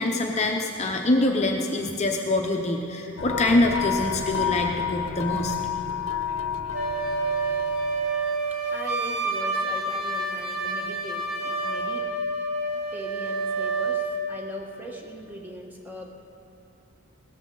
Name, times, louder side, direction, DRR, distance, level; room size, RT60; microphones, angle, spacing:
voice 1, 0.0-5.6, left 2 dB, 30° left, 2 dB, 0.6 m, -24 dB
sound 1, 3.2-8.3, left 7 dB, 65° left, 0.7 m, -30 dB
Wind instrument woodwind instrument, 6.7-14.1, right 3 dB, 85° right, 1.7 m, -28 dB
voice 2, 8.5-12.1 12.9-16.1, equal, 10° right, 0 dB, 1.3 m, -40 dB
17.5 x 13.5 x 3.9 m, 2.8 s
head